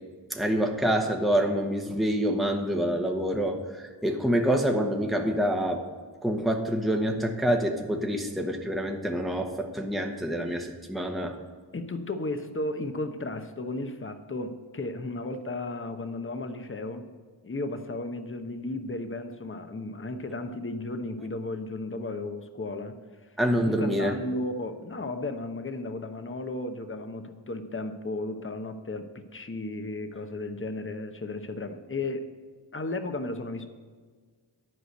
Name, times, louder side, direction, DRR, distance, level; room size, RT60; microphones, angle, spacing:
voice 1, 0.3-5.8 6.2-11.3 23.4-24.1, equal, ahead, 2 dB, 1.2 m, -26 dB
voice 2, 11.7-17.1 17.4-23.0 23.2-23.3 23.6-32.3 32.7-33.7, left 2 dB, 30° left, 8 dB, 1.0 m, -34 dB
11.0 x 4.9 x 7.9 m, 1.5 s
cardioid pair, 65°, 43 cm